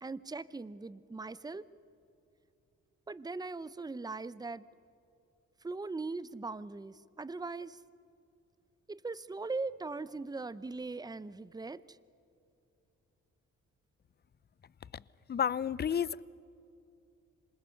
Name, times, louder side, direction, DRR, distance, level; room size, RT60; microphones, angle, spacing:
voice 1, 0.0-1.6 3.1-4.6 5.6-7.8 8.9-11.8, right 3 dB, 15° right, 17 dB, 0.7 m, -40 dB
voice 2, 15.3-16.2, left 8 dB, 35° left, 20 dB, 0.5 m, -31 dB
26.5 x 20.0 x 6.5 m, 2.7 s
cardioid pair, 65°, 31 cm